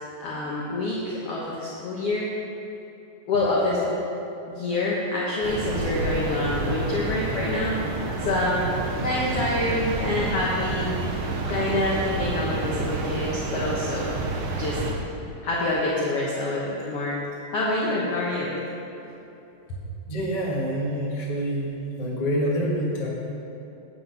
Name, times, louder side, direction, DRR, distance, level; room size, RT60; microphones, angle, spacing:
voice 1, 0.2-2.3 3.3-3.8 4.5-7.8 8.2-8.6 9.0-10.9 11.5-14.1 14.6-14.8 15.4-17.2 17.5-18.5, left 2 dB, 70° left, -5 dB, 1.4 m, -26 dB
sound 1, 5.4-14.9, right 3 dB, 75° right, 2.8 m, -29 dB
voice 2, 20.1-21.7 22.0-23.1, equal, 45° left, -5 dB, 0.5 m, -26 dB
9.7 x 7.8 x 5.6 m, 2.9 s
omnidirectional pair, 4.3 m